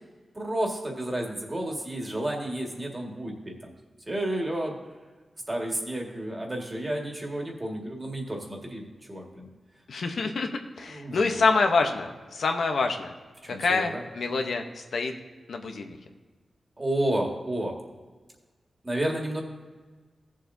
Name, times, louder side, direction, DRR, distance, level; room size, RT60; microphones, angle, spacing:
voice 1, 0.3-3.7 4.1-4.8 5.5-9.5 10.9-11.4 13.4-14.0 16.8-17.7 18.8-19.4, right 1 dB, 25° right, 0 dB, 1.8 m, -31 dB
voice 2, 9.9-10.5 10.8-13.1 13.6-15.1 15.5-16.0, left 4 dB, 80° left, 4 dB, 0.9 m, -26 dB
16.0 x 7.4 x 2.7 m, 1.4 s
wide cardioid pair, 115°, 0 cm